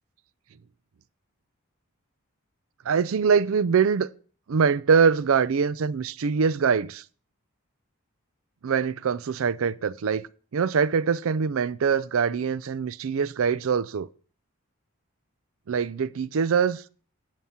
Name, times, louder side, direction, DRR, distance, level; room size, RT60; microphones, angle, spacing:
voice 1, 2.8-4.1 4.5-7.0 8.6-14.1 15.7-16.8, right 6 dB, 70° right, 0.4 m, -23 dB
10.5 x 7.3 x 4.3 m
head